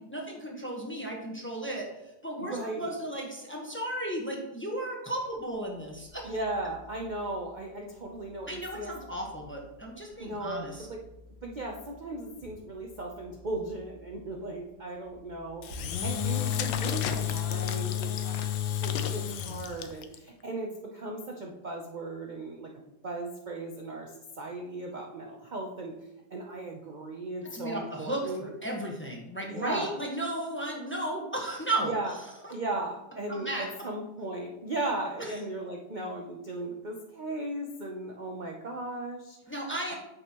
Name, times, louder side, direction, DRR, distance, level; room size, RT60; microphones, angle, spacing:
voice 1, 0.1-1.9 2.2-6.3 8.5-10.9 27.5-31.9 32.4-32.5 33.3-33.7 35.2-35.3 39.5-39.9, right 1 dB, 10° left, -1 dB, 0.9 m, -34 dB
voice 2, 2.4-2.9 6.2-8.9 10.2-11.0 11.4-18.5 18.8-22.7 23.0-24.1 24.4-26.0 26.3-28.5 29.4-30.0 31.8-32.1 32.5-39.4 39.9-40.0, right 2 dB, 55° right, 0 dB, 0.5 m, -37 dB
sound 1, 5.2-15.8, left 2 dB, 70° right, 2.7 m, -54 dB
Engine / Drill, 15.6-20.2, left 9 dB, 90° left, 1.4 m, -30 dB
8.9 x 6.4 x 3.0 m, 0.91 s
omnidirectional pair, 1.9 m